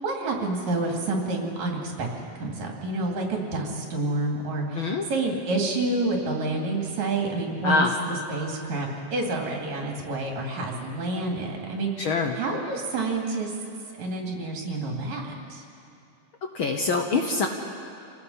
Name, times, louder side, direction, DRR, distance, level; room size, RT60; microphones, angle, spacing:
voice 1, 0.0-2.1 2.4-12.1 12.4-13.5 13.9-15.6, right 2 dB, 75° right, 0 dB, 4.0 m, -28 dB
voice 2, 7.6-8.0 12.0-12.3 16.5-17.5, left 3 dB, 55° left, 3 dB, 1.5 m, -24 dB
28.0 x 18.0 x 5.6 m, 2.7 s
omnidirectional pair, 3.3 m